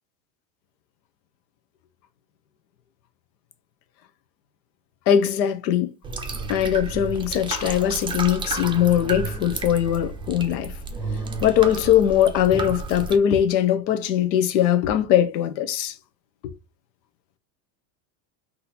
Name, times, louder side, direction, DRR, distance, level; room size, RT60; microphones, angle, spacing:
voice 1, 5.1-5.9 6.5-10.7 11.4-15.9, left 10 dB, 85° left, 0.9 m, -21 dB
sound 1, 6.0-13.2, right 3 dB, 10° right, 0.4 m, -32 dB
4.0 x 2.8 x 4.1 m
supercardioid pair, 115°, 49 cm